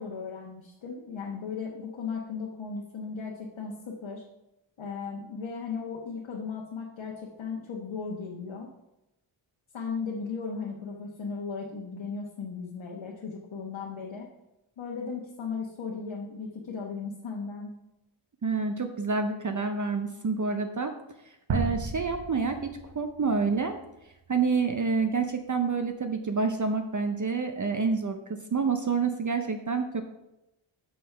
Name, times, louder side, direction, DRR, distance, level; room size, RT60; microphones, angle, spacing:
voice 1, 0.0-4.2 4.8-8.7 9.7-14.3 14.8-17.7, left 5 dB, 65° left, -1 dB, 1.2 m, -36 dB
voice 2, 18.4-20.9 21.2-23.8 24.3-30.0, right 4 dB, 40° right, 6 dB, 0.6 m, -28 dB
sound 1, 21.5-24.4, right 4 dB, 60° right, 0.9 m, -35 dB
6.4 x 5.7 x 5.7 m, 0.91 s
wide cardioid pair, 110°, 50 cm